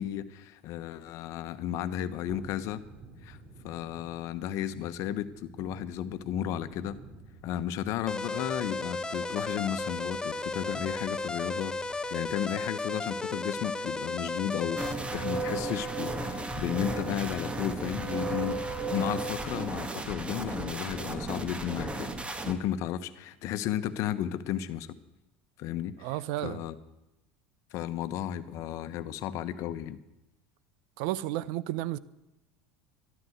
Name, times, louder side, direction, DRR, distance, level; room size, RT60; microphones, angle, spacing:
voice 1, 0.0-2.8 3.2-3.4 3.6-7.0 7.4-11.7 12.1-18.6 18.9-22.1 22.5-25.0 25.6-26.8 27.7-30.0, left 11 dB, 55° left, 1.1 m, -34 dB
Thunderstorm, 2.3-12.5 12.8-12.9, right 2 dB, 40° right, 2.7 m, -53 dB
sound 1, 8.1-14.9, left 3 dB, 10° left, 0.9 m, -34 dB
sound 2, 14.8-22.5, right 2 dB, 20° right, 2.0 m, -34 dB
voice 2, 26.0-26.6 31.0-32.0, right 15 dB, 65° right, 0.7 m, -32 dB
13.5 x 12.5 x 8.0 m
hypercardioid pair, 80°, 6 cm